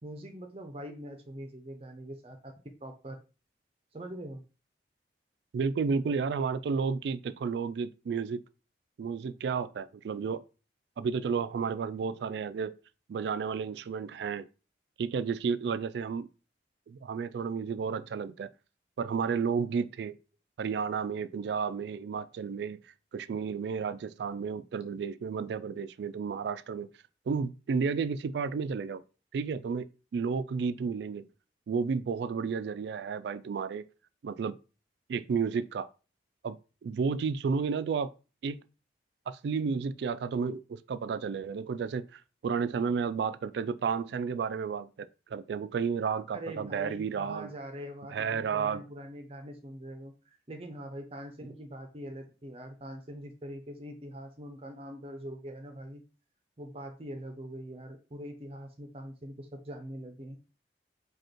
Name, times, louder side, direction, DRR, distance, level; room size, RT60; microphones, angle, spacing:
voice 1, 0.0-2.5 2.8-3.2 3.9-4.4 46.3-56.0 56.6-60.4, equal, 30° right, 0.6 m, -43 dB
voice 2, 5.5-8.4 9.0-10.4 11.0-12.7 13.1-14.5 15.0-16.3 16.9-18.5 19.0-20.2 20.6-26.9 27.3-29.0 29.3-29.9 30.1-31.3 31.7-33.8 34.2-34.6 35.1-35.9 36.4-38.1 38.4-38.6 39.3-47.5 48.1-48.8, right 5 dB, 70° right, 0.3 m, -32 dB
5.1 x 2.4 x 4.4 m
head